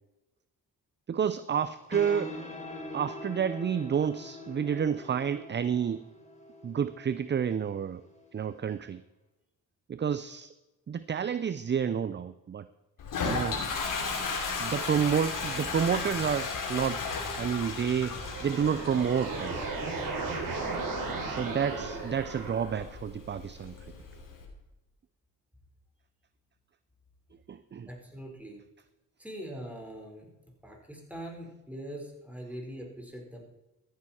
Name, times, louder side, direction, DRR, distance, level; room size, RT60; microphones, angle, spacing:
voice 1, 1.1-2.4 2.9-6.1 6.6-8.0 8.3-9.0 9.9-10.5 10.9-12.7 13.2-13.6 14.6-17.0 17.4-19.6 21.2-23.8 27.5-27.9, right 7 dB, 35° right, 14 dB, 0.5 m, -30 dB
sound 1, 1.6-8.8, left 1 dB, 20° left, 3.4 m, -44 dB
Toilet flush, 13.0-24.4, left 4 dB, 70° left, 3.0 m, -36 dB
sound 2, 17.9-22.9, right 3 dB, 70° right, 3.4 m, -35 dB
voice 2, 27.9-28.6 29.2-30.3 30.6-33.4, right 1 dB, 5° right, 0 dB, 4.4 m, -42 dB
14.0 x 9.5 x 4.4 m, 1.0 s
cardioid pair, 65°, 33 cm